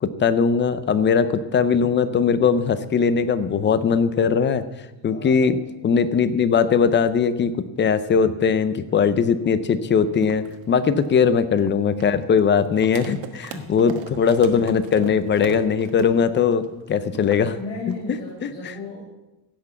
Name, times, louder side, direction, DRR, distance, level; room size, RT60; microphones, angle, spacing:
voice 1, 0.0-4.6 5.0-5.6 5.8-17.5 18.4-18.5, left 6 dB, 25° left, 13 dB, 0.6 m, -20 dB
voice 2, 5.0-5.6 10.7-11.1 13.5-13.8 17.0-19.1, left 3 dB, 60° left, -8 dB, 5.7 m, -37 dB
sound 1, 10.2-18.5, right 9 dB, 85° right, 1.5 m, -38 dB
16.5 x 6.1 x 7.7 m, 1.0 s
cardioid pair, 165°, 44 cm